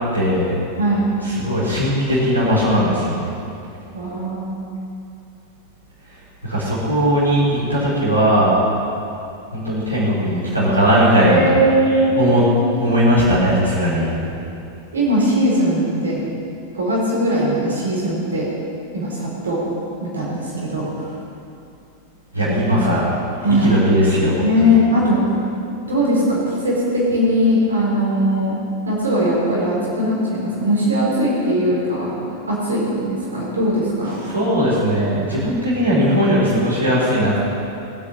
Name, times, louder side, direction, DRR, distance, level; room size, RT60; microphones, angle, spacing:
voice 1, 0.1-0.6 1.2-3.3 6.4-8.5 9.5-11.5 12.1-12.4 12.8-14.1 22.3-23.0 23.6-24.8 34.3-37.4, equal, 90° right, -10 dB, 4.1 m, -18 dB
voice 2, 0.8-1.1 3.9-4.5 11.2-12.5 14.9-16.3 16.7-18.5 18.9-19.6 20.0-21.1 22.5-22.8 23.4-23.8 24.4-25.4 25.8-28.6 28.9-32.2 32.5-34.2, equal, 70° right, -5 dB, 4.5 m, -20 dB
21.0 x 8.3 x 6.6 m, 2.7 s
figure-of-eight pair, 90°, 0 cm